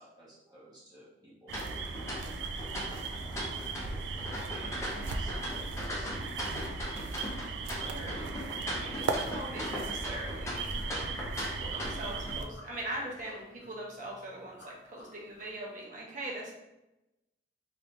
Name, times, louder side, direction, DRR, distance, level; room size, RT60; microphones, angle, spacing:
voice 1, 0.0-2.1 3.1-6.2, right 1 dB, 25° right, -8 dB, 0.9 m, -55 dB
sound 1, 1.5-12.3, left 1 dB, 15° left, 0.7 m, -39 dB
sound 2, 1.5-12.4, right 4 dB, 85° right, 0.3 m, -37 dB
sound 3, 5.7-15.6, left 2 dB, 70° left, 0.8 m, -55 dB
voice 2, 7.6-11.1 11.6-16.5, right 1 dB, 45° right, -3 dB, 1.0 m, -42 dB
3.3 x 3.1 x 2.7 m, 0.95 s
head